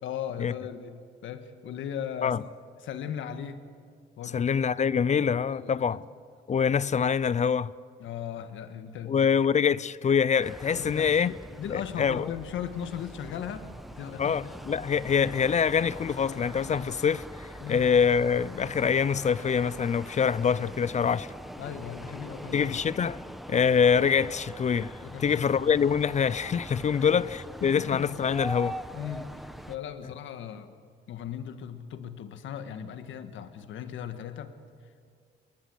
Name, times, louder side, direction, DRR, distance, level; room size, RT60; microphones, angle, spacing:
voice 1, 0.0-2.4 2.8-3.6 4.2-4.5 4.8-4.9 5.5-6.1 8.0-9.3 10.7-14.7 17.6-17.9 21.6-22.6 25.0-25.7 26.9-27.3 27.6-28.1 28.9-30.7 31.1-34.5, left 9 dB, 75° left, 1.6 m, -38 dB
voice 2, 4.3-6.0 6.5-7.7 9.1-11.3 11.7-12.3 14.2-21.3 22.5-23.2 23.5-28.8, left 7 dB, 35° left, 0.5 m, -25 dB
sound 1, 10.4-29.8, equal, ahead, 1.3 m, -42 dB
22.0 x 20.0 x 8.0 m
cardioid pair, 90°, 20 cm